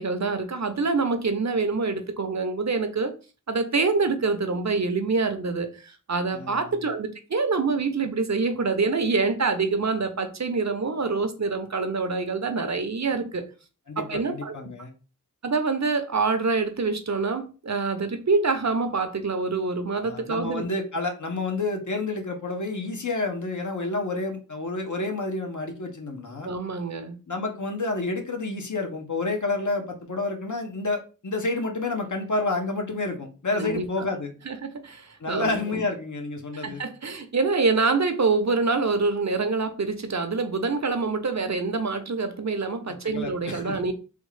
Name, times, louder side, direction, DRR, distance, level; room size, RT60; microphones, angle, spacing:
voice 1, 0.0-3.1 3.5-13.5 14.0-14.6 15.4-20.7 26.4-27.2 33.5-34.1 34.5-35.9 36.5-43.9, right 4 dB, 55° right, 0.6 m, -26 dB
voice 2, 6.3-6.6 13.9-14.9 20.0-26.5 27.3-34.3 35.2-36.8 43.0-43.8, left 3 dB, 60° left, 0.8 m, -29 dB
3.5 x 2.3 x 3.2 m
wide cardioid pair, 45°, 34 cm